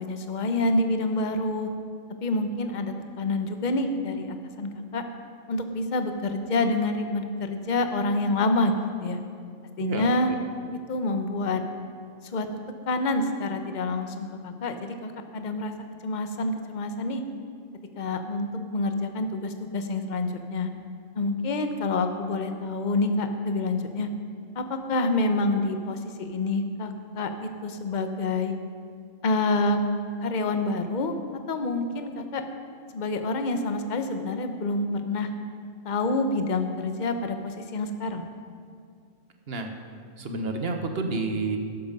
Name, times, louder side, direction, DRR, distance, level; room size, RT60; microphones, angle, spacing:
voice 1, 0.0-1.7 2.2-5.0 5.5-8.8 9.0-9.2 9.8-10.3 10.9-11.6 12.3-12.5 12.9-15.7 16.0-17.2 18.0-20.7 21.1-24.1 24.6-28.5 29.2-29.8 30.2-31.1 31.5-32.4 32.9-35.3 35.8-38.2, left 2 dB, 40° left, 7 dB, 0.9 m, -27 dB
voice 2, 9.8-10.4 39.5-39.7 40.2-41.6, right 3 dB, 50° right, 4 dB, 1.3 m, -29 dB
13.0 x 11.5 x 5.3 m, 2.3 s
omnidirectional pair, 1.4 m